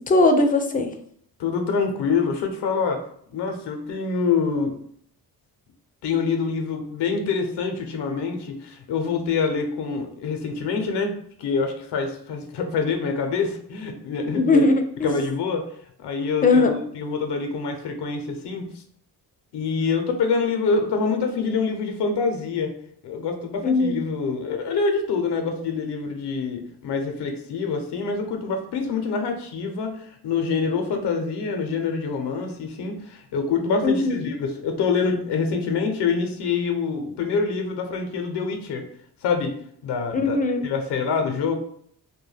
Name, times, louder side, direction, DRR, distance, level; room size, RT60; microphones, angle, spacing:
voice 1, 0.1-0.9 14.4-15.1 16.4-16.7 23.6-24.0 33.8-34.2 40.1-40.7, left 3 dB, 25° left, 5 dB, 0.3 m, -19 dB
voice 2, 1.4-3.0 3.3-4.7 6.0-11.1 11.4-14.6 15.0-15.6 16.0-18.7 19.5-22.7 23.0-38.8 39.2-39.5 39.8-40.4 40.6-41.6, left 5 dB, 80° left, 5 dB, 0.6 m, -26 dB
2.2 x 2.1 x 3.2 m, 0.64 s
cardioid pair, 90°, 41 cm